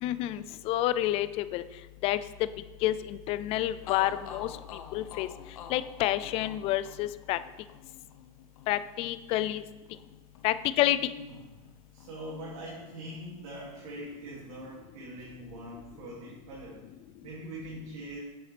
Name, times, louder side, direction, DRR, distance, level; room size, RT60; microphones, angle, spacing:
voice 1, 0.0-1.6 2.0-2.2 2.8-4.5 4.9-5.3 5.7-7.4 8.7-9.6 10.4-11.0, left 14 dB, 35° left, 14 dB, 0.4 m, -28 dB
sound 1, 3.4-3.5 3.9-11.7 12.0-13.1, left 7 dB, 85° left, 0.9 m, -48 dB
voice 2, 11.0-11.3 11.9-16.8 17.2-18.2, right 1 dB, 65° right, -5 dB, 2.5 m, -42 dB
7.6 x 7.1 x 3.4 m, 1.1 s
supercardioid pair, 145°, 18 cm